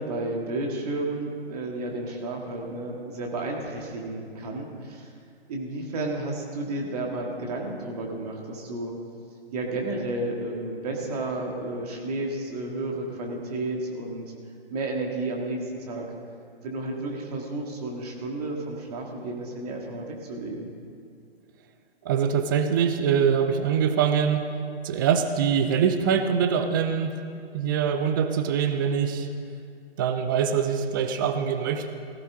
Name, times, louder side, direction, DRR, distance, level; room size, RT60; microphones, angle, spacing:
voice 1, 0.0-5.1 5.5-8.9 9.5-14.2 14.7-16.1 16.6-20.7, right 2 dB, 40° right, 0 dB, 2.0 m, -32 dB
voice 2, 22.0-24.4 24.8-27.1 27.5-29.3 30.0-31.9, right 7 dB, 20° right, 8 dB, 0.5 m, -23 dB
18.0 x 15.5 x 3.6 m, 2.3 s
figure-of-eight pair, 135°, 31 cm